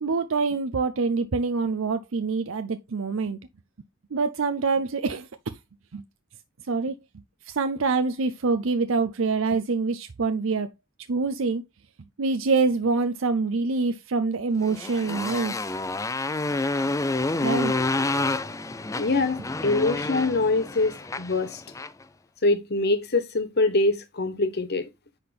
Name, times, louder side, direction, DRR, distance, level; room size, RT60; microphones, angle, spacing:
voice 1, 0.0-3.4 4.1-5.3 5.9-6.0 6.7-7.0 7.5-10.7 11.1-11.6 12.2-15.5 17.4-17.7, right 4 dB, 80° right, 0.6 m, -25 dB
Motorcycle, 14.6-22.0, left 2 dB, 15° left, 0.5 m, -28 dB
voice 2, 19.0-21.6 22.4-24.9, left 2 dB, 55° left, 1.2 m, -24 dB
9.9 x 4.3 x 3.4 m
head